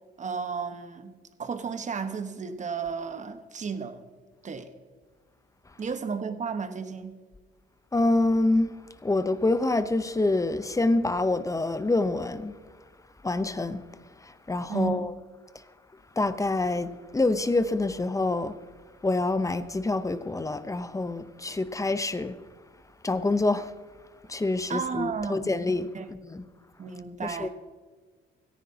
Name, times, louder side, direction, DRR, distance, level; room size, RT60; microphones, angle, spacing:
voice 1, 0.2-1.1 1.4-4.0 4.4-4.7 5.8-7.2 14.7-15.1 24.7-25.5 25.9-26.1 26.8-27.5, right 5 dB, 35° right, 1.2 m, -33 dB
voice 2, 7.9-8.7 9.0-12.5 13.2-13.8 14.2-15.1 16.2-18.6 19.0-22.4 23.0-23.7 24.3-26.4 27.2-27.5, left 2 dB, 15° left, 0.7 m, -26 dB
17.5 x 14.5 x 2.8 m
cardioid pair, 90°, 20 cm